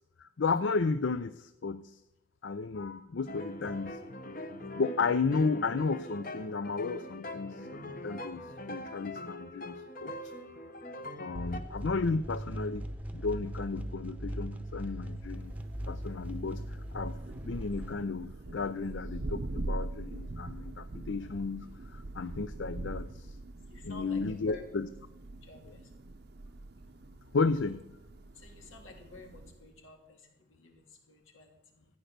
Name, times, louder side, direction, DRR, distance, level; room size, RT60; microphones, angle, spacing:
voice 1, 0.2-2.0 2.4-4.0 4.8-8.4 8.7-10.3 11.2-12.9 13.1-15.5 15.9-17.2 17.4-23.4 23.8-24.9 25.6-25.7 27.3-27.8, left 4 dB, 65° left, 12 dB, 0.5 m, -33 dB
sound 1, 3.3-11.6, left 1 dB, 45° left, 1.0 m, -42 dB
sound 2, 11.3-17.9, right 1 dB, 10° right, 0.8 m, -39 dB
Thunder, 15.2-29.8, right 2 dB, 55° right, 0.7 m, -43 dB
voice 2, 23.7-24.6 25.4-25.9 28.3-31.9, left 3 dB, 85° left, 2 dB, 3.0 m, -49 dB
14.5 x 9.2 x 6.7 m, 0.86 s
head